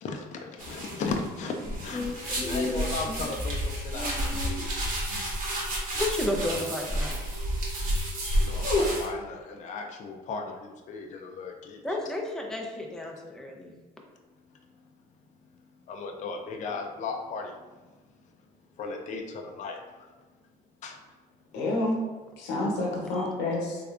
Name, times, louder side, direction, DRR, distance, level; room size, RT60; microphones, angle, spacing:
voice 1, 0.0-4.7 8.4-12.0 15.9-17.5 18.8-20.1 20.8-21.0, left 4 dB, 45° left, 3 dB, 0.4 m, -36 dB
sound 1, 0.6-9.1, right 1 dB, 50° right, 1.3 m, -31 dB
voice 2, 1.9-3.2 3.9-4.7 5.9-7.2 8.2-8.5 11.8-13.7 23.2-23.3, left 2 dB, 5° left, 0 dB, 0.6 m, -33 dB
voice 3, 21.5-22.0 22.4-23.8, left 2 dB, 90° left, -2 dB, 0.8 m, -28 dB
3.5 x 3.4 x 2.4 m, 1.3 s
cardioid pair, 110°, 17 cm